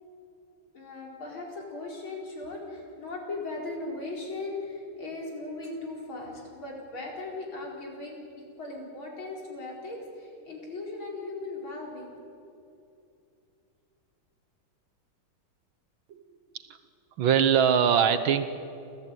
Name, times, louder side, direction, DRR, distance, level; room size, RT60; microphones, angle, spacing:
voice 1, 0.7-12.2, left 2 dB, 70° left, -1 dB, 5.3 m, -38 dB
voice 2, 17.2-18.5, right 8 dB, 70° right, 10 dB, 1.8 m, -22 dB
28.5 x 14.5 x 9.2 m, 2.6 s
omnidirectional pair, 2.3 m